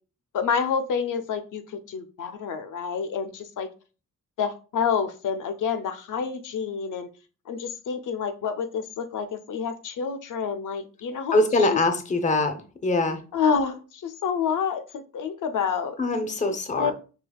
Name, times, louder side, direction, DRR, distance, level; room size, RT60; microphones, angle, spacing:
voice 1, 0.3-3.7 4.4-7.1 7.5-11.8 13.3-16.0 16.2-16.3 16.7-16.9, left 6 dB, 75° left, 9 dB, 0.5 m, -28 dB
voice 2, 11.3-12.6 12.8-13.2 16.0-16.9, left 2 dB, 25° left, 8 dB, 0.5 m, -23 dB
4.9 x 2.7 x 2.3 m, 0.35 s
wide cardioid pair, 135°, 31 cm